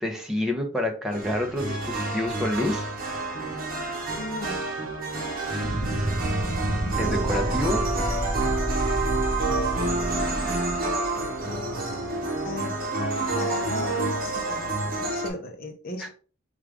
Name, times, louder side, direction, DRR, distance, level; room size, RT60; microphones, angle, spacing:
voice 1, 0.0-2.9 7.0-7.8 16.0-16.1, left 1 dB, 5° right, 2 dB, 0.7 m, -28 dB
sound 1, 1.1-15.3, right 2 dB, 45° right, 0.9 m, -28 dB
voice 2, 4.2-4.7 10.7-10.9 12.4-12.8 13.3-16.1, left 1 dB, 45° left, 4 dB, 0.7 m, -37 dB
sound 2, 5.6-11.4, right 1 dB, 20° left, 1.3 m, -30 dB
4.7 x 2.5 x 3.4 m, 0.39 s
head